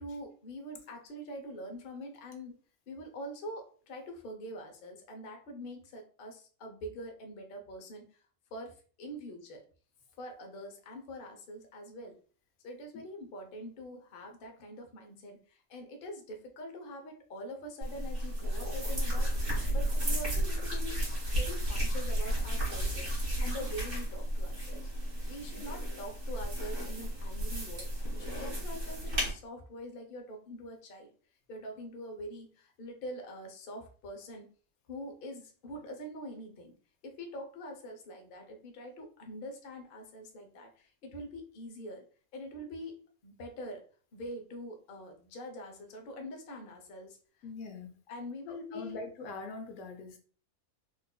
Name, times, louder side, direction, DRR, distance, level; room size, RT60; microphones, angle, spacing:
voice 1, 0.0-2.6 2.9-8.2 8.5-9.6 10.2-12.2 12.6-21.0 21.3-24.9 25.3-31.1 31.5-34.5 34.9-36.7 37.0-42.0 42.3-43.8 44.1-47.2 48.1-49.0, equal, 50° left, 3 dB, 0.7 m, -44 dB
sound 1, 17.8-29.3, right 1 dB, 40° right, 1.7 m, -33 dB
voice 2, 47.4-48.0 48.5-50.2, left 3 dB, 80° left, 5 dB, 1.1 m, -43 dB
4.4 x 2.5 x 2.2 m, 0.41 s
omnidirectional pair, 1.5 m